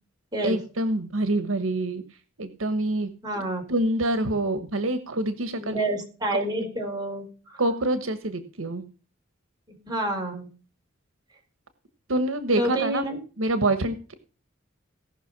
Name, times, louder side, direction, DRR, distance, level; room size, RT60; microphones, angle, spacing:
voice 1, 0.4-2.0 2.4-3.1 3.7-5.8 7.6-8.8 12.1-13.0 13.4-14.1, right 1 dB, 80° right, 11 dB, 1.3 m, -26 dB
voice 2, 3.2-3.6 5.6-7.6 9.8-10.5 12.6-13.2, right 1 dB, 20° right, 1 dB, 4.8 m, -28 dB
18.0 x 6.2 x 6.0 m, 0.36 s
head